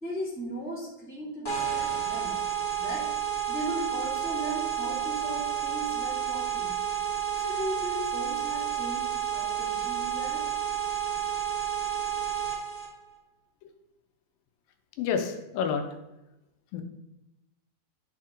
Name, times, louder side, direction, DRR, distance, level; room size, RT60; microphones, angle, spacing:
voice 1, 0.0-2.4 2.8-3.1 3.5-6.8 7.3-10.5, equal, 5° right, -7 dB, 1.6 m, -37 dB
sound 1, 1.4-12.9, right 9 dB, 25° left, 1.7 m, -30 dB
voice 2, 15.0-15.8 16.7-16.8, left 6 dB, 80° left, 6 dB, 2.4 m, -29 dB
11.0 x 4.4 x 3.7 m, 0.94 s
omnidirectional pair, 4.0 m